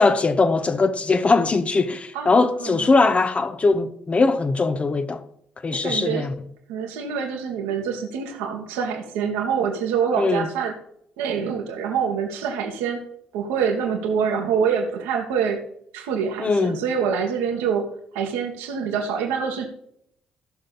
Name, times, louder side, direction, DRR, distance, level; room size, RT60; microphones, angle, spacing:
voice 1, 0.0-5.2 5.6-6.3 10.2-10.5 16.4-16.8, left 3 dB, 30° left, 1.0 m, -20 dB
voice 2, 2.1-2.9 5.8-6.3 6.7-10.7 11.2-13.0 13.3-15.6 15.9-17.9 18.1-19.7, right 7 dB, 65° right, 1.7 m, -25 dB
15.0 x 6.7 x 4.1 m
figure-of-eight pair, 45°, 5 cm